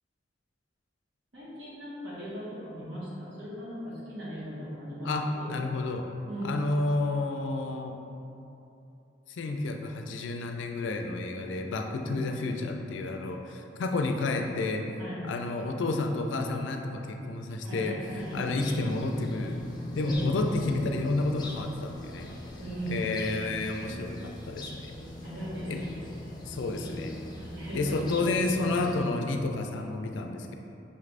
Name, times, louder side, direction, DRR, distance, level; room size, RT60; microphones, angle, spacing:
voice 1, 1.3-5.5 6.3-6.6 12.0-12.2 15.0-15.3 17.6-18.6 20.0-20.4 22.6-23.6 25.2-26.3 27.3-28.1, right 1 dB, 70° right, -8 dB, 1.3 m, -38 dB
voice 2, 5.0-6.1 6.4-8.0 9.3-14.9 15.2-19.5 20.0-22.3 22.9-24.9 25.7-25.8 26.5-27.1 27.7-30.5, left 2 dB, 80° left, 4 dB, 0.4 m, -30 dB
sound 1, 18.0-29.0, left 1 dB, 25° left, 0.5 m, -40 dB
5.5 x 2.5 x 3.3 m, 2.8 s
head